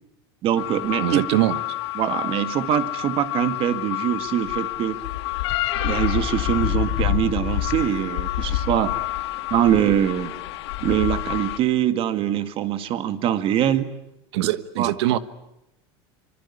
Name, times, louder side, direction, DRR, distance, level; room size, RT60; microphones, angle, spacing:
voice 1, 0.4-1.2 2.0-5.0 5.8-8.9 9.5-10.3 10.8-13.9 14.8-15.2, right 10 dB, 40° right, 10 dB, 2.1 m, -23 dB
sound 1, 0.6-11.6, left 13 dB, 90° left, 2.9 m, -27 dB
voice 2, 1.0-1.6 14.3-15.2, right 15 dB, 85° right, 14 dB, 1.4 m, -22 dB
25.5 x 24.0 x 9.8 m, 0.86 s
supercardioid pair, 145°, 14 cm